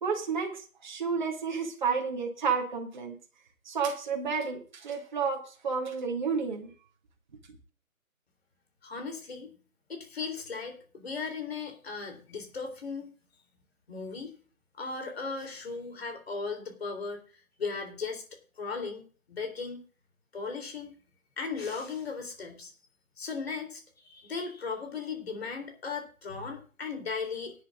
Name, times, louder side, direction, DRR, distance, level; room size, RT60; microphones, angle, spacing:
voice 1, 0.0-3.2 3.7-6.7, right 5 dB, 35° right, 2 dB, 1.9 m, -31 dB
voice 2, 8.8-9.5 9.9-13.1 13.9-14.4 14.8-17.2 17.6-18.2 18.6-19.8 20.3-20.9 21.4-22.7 23.2-27.5, left 4 dB, 45° left, 4 dB, 3.4 m, -37 dB
18.5 x 10.5 x 2.5 m, 0.38 s
figure-of-eight pair, 160°, 42 cm